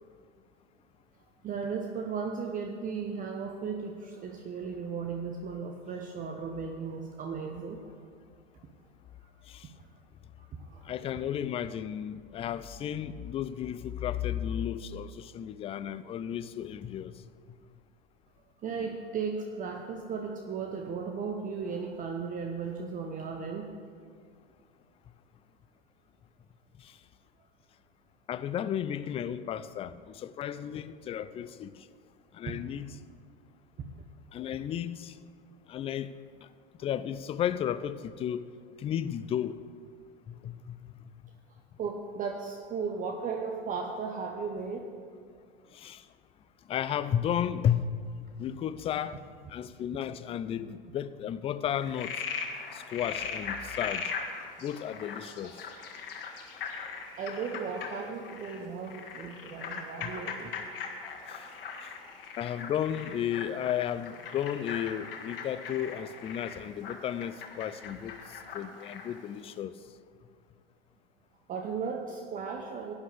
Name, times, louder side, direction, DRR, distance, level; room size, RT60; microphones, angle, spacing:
voice 1, 1.4-7.9 9.2-9.3 10.4-10.9 18.6-23.7 32.5-32.6 33.8-33.9 41.8-44.9 55.4-55.5 57.2-60.5 71.5-72.9, right 5 dB, 30° right, 3 dB, 0.9 m, -36 dB
voice 2, 10.8-17.1 26.8-26.9 28.3-31.7 32.3-32.9 34.3-35.2 35.7-36.1 36.8-38.5 38.8-39.6 40.4-40.8 45.7-46.0 46.7-47.9 48.4-49.2 49.5-52.2 52.7-54.1 54.6-55.6 60.0-60.1 61.3-61.5 62.4-69.7, left 10 dB, 20° left, 14 dB, 0.4 m, -33 dB
Frog, 51.7-69.2, left 6 dB, 70° left, 1.5 m, -40 dB
17.0 x 10.0 x 3.4 m, 2.1 s
figure-of-eight pair, 85°, 29 cm